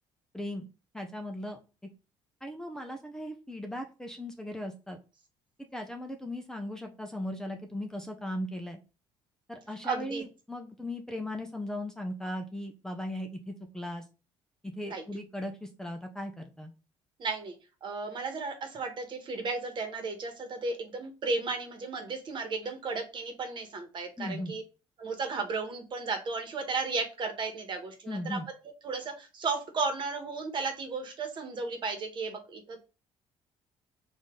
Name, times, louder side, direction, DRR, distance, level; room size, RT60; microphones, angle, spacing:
voice 1, 0.3-0.7 0.9-1.6 2.4-5.0 5.7-8.8 9.5-14.0 14.6-16.7 24.2-24.6 28.1-28.5, left 1 dB, 5° left, 3 dB, 0.7 m, -38 dB
voice 2, 9.8-10.2 14.8-15.0 17.2-17.5 17.8-24.6 25.0-28.5 28.8-32.8, right 4 dB, 45° right, 5 dB, 1.3 m, -34 dB
4.8 x 2.7 x 3.7 m, 0.31 s
cardioid pair, 100°, 11 cm